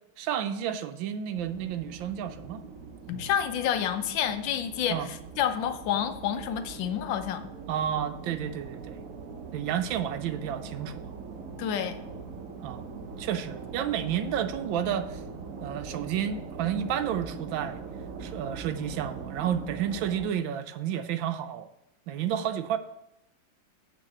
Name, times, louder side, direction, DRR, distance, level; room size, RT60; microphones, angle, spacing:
voice 1, 0.2-2.6 4.9-5.1 7.7-9.0 9.5-11.1 12.6-12.9 13.2-15.2 15.6-17.8 18.2-21.7 22.1-22.8, right 9 dB, 75° right, 10 dB, 1.3 m, -31 dB
sound 1, 1.3-20.3, right 5 dB, 55° right, 0.9 m, -42 dB
voice 2, 3.1-7.5 11.6-12.0, left 9 dB, 70° left, 9 dB, 1.4 m, -29 dB
9.3 x 3.9 x 7.2 m, 0.87 s
omnidirectional pair, 2.3 m